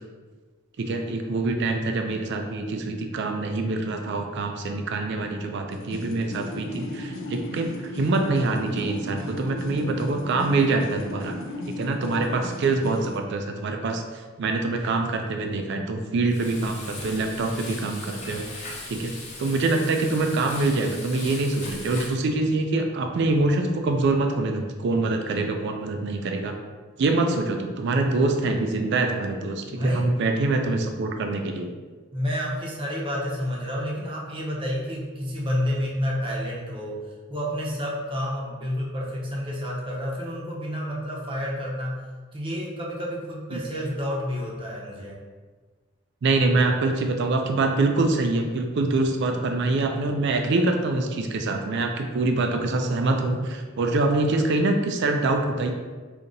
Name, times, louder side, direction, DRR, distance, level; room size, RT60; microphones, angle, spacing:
voice 1, 0.8-11.4 11.8-19.1 19.4-26.5 27.0-31.7 43.5-43.6 46.2-55.7, right 2 dB, 60° right, 4 dB, 0.4 m, -25 dB
sound 1, 5.7-13.2, left 1 dB, 70° left, 0.5 m, -35 dB
Frying (food), 16.3-22.2, left 2 dB, 35° left, 0.8 m, -39 dB
voice 2, 29.7-30.1 32.1-42.0 42.3-45.2, equal, 25° right, -3 dB, 0.7 m, -30 dB
5.0 x 2.8 x 2.6 m, 1.4 s
head